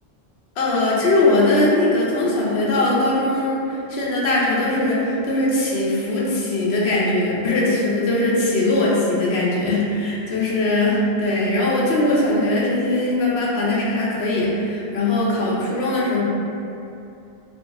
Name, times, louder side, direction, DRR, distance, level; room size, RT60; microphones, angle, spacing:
voice 1, 0.6-16.2, left 2 dB, 80° left, -5 dB, 0.9 m, -20 dB
2.5 x 2.4 x 3.9 m, 2.8 s
omnidirectional pair, 1.1 m